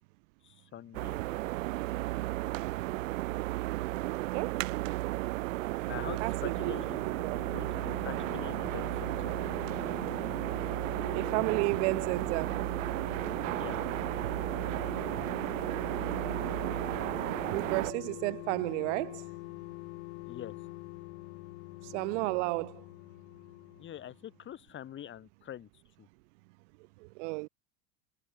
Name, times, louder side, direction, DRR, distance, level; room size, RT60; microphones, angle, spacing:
voice 1, 0.4-1.4 5.9-9.3 9.7-9.9 13.6-13.9 20.3-20.6 23.8-26.1, left 10 dB, 30° left, 6.2 m, -45 dB
sound 1, 0.9-17.9, right 18 dB, 85° right, 1.6 m, -34 dB
voice 2, 4.0-4.6 6.2-6.7 7.1-7.4 11.1-12.6 17.5-19.3 21.8-22.8 27.0-27.5, right 27 dB, 65° right, 1.7 m, -32 dB
sound 2, 6.2-24.4 24.7-24.8, left 26 dB, 65° left, 2.1 m, -45 dB
supercardioid pair, 145°, 38 cm